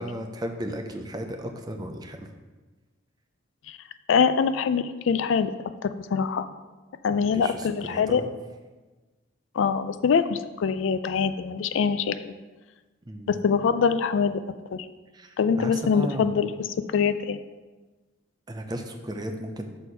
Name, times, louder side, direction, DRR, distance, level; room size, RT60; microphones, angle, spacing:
voice 1, 0.0-2.3 7.1-8.3 13.1-13.4 15.1-16.3 18.5-19.7, right 1 dB, 20° right, 4 dB, 0.5 m, -35 dB
voice 2, 4.1-5.5 5.8-6.5 7.0-8.2 9.6-12.3 13.3-14.4 14.7-14.8 15.4-16.7 16.9-17.4, left 6 dB, 70° left, 11 dB, 0.3 m, -24 dB
6.4 x 4.2 x 5.4 m, 1.2 s
head